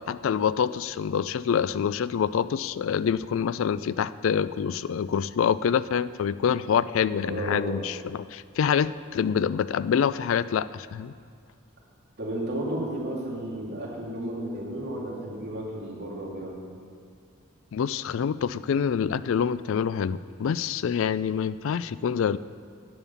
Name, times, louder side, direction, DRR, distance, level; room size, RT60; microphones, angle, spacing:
voice 1, 0.1-11.1 17.7-22.4, left 7 dB, 65° left, 16 dB, 0.3 m, -26 dB
voice 2, 7.2-7.8 12.2-16.6, right 1 dB, 50° right, -4 dB, 2.6 m, -33 dB
11.0 x 7.3 x 7.0 m, 2.2 s
head